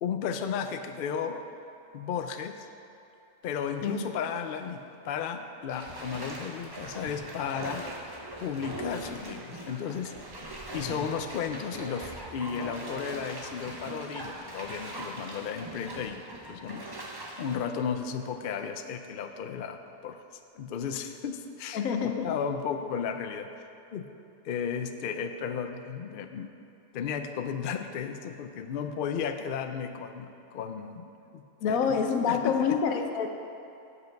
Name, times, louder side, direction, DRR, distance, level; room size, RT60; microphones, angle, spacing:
voice 1, 0.0-1.4 1.9-2.7 3.4-7.9 8.4-10.1 10.7-16.9 17.4-20.2 20.6-24.1 24.4-26.5 26.9-32.0 32.3-32.8, left 7 dB, 60° left, 7 dB, 0.5 m, -34 dB
Bathtub (filling or washing), 3.5-3.9 4.4-4.5 5.7-18.8 19.2-19.3, right 1 dB, 20° right, 0.7 m, -41 dB
voice 2, 21.7-22.3 31.6-33.3, left 6 dB, 85° left, 5 dB, 1.2 m, -27 dB
8.0 x 7.8 x 5.2 m, 2.8 s
omnidirectional pair, 1.4 m